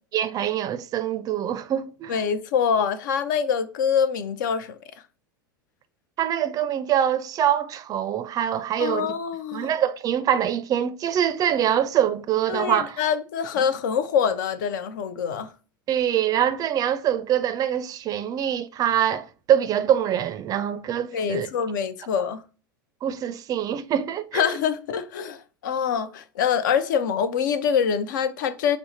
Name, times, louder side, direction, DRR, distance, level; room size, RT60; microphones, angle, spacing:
voice 1, 0.1-2.2 6.2-9.1 9.5-13.0 15.9-21.5 23.0-24.4, right 10 dB, 35° right, 0.4 m, -24 dB
voice 2, 2.1-4.8 8.8-9.7 12.5-15.5 21.1-22.4 24.3-28.8, left 7 dB, 65° left, 0.5 m, -25 dB
5.5 x 2.0 x 4.0 m
figure-of-eight pair, 85°, 11 cm